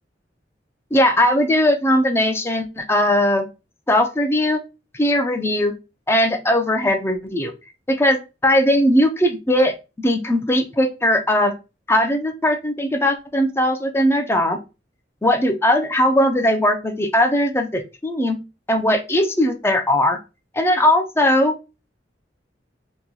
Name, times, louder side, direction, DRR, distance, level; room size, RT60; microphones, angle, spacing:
voice 1, 0.9-3.5 3.9-4.6 4.9-5.7 6.1-7.5 7.9-11.5 11.9-14.6 15.2-18.4 18.7-20.2 20.5-21.6, left 1 dB, 15° left, 5 dB, 0.5 m, -19 dB
2.9 x 2.3 x 3.8 m, 0.28 s
head